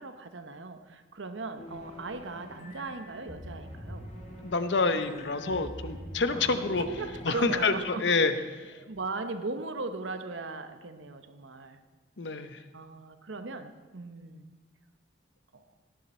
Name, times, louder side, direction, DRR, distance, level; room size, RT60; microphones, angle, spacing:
voice 1, 0.0-4.1 6.3-8.1 8.8-11.8 12.7-14.5 15.5-15.6, right 3 dB, 75° right, 9 dB, 1.0 m, -38 dB
sound 1, 1.6-8.3, equal, 35° left, 2.6 m, -44 dB
voice 2, 4.4-6.9 7.2-8.8 12.2-12.6, left 4 dB, 65° left, 10 dB, 0.8 m, -28 dB
18.0 x 10.5 x 4.4 m, 1.3 s
head